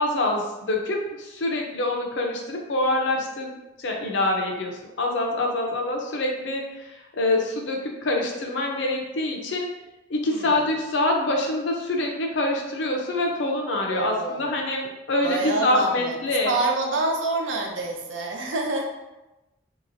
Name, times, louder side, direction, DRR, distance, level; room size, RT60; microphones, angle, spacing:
voice 1, 0.0-9.7 10.1-16.5, left 2 dB, 70° left, 1 dB, 0.5 m, -25 dB
voice 2, 10.3-10.7 13.9-14.5 15.2-18.9, right 2 dB, 75° right, 2 dB, 0.5 m, -27 dB
3.1 x 2.8 x 2.5 m, 1.0 s
head